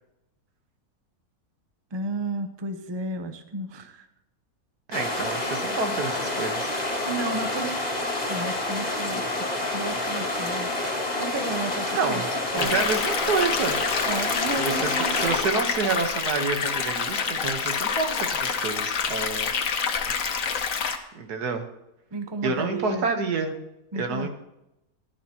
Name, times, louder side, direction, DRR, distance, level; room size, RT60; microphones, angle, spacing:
voice 1, 1.9-4.1 7.1-12.2 12.5-12.8 14.1-15.2 22.1-23.1 23.9-24.3, right 2 dB, 25° right, 7 dB, 0.7 m, -33 dB
sound 1, 4.9-15.4, left 2 dB, 25° left, 2.1 m, -28 dB
voice 2, 4.9-6.7 11.9-12.3 12.5-14.1 14.6-19.5 21.1-21.7 22.4-23.5 23.9-24.3, right 4 dB, 90° right, 6 dB, 1.8 m, -28 dB
sound 2, 12.6-21.0, left 6 dB, 60° left, 1.3 m, -27 dB
16.5 x 11.0 x 2.9 m, 0.87 s
omnidirectional pair, 1.6 m